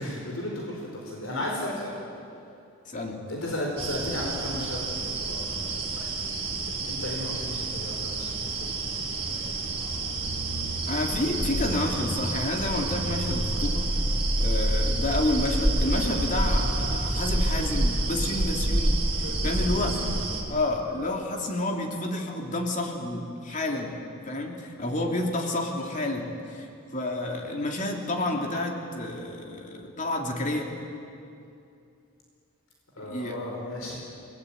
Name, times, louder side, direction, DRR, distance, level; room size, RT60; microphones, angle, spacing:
voice 1, 0.0-1.9 3.3-9.9 19.1-20.2 32.9-34.0, left 1 dB, 70° left, -1 dB, 4.8 m, -35 dB
voice 2, 2.9-3.2 10.9-13.9 14.4-20.0 20.5-26.7 26.9-30.7 33.1-33.4, left 2 dB, 35° left, 1 dB, 3.3 m, -30 dB
sound 1, 3.8-20.4, right 2 dB, 30° right, 4.0 m, -29 dB
sound 2, 9.5-19.8 20.1-20.4, equal, 85° right, 2.6 m, -32 dB
29.5 x 20.0 x 9.0 m, 2.6 s
head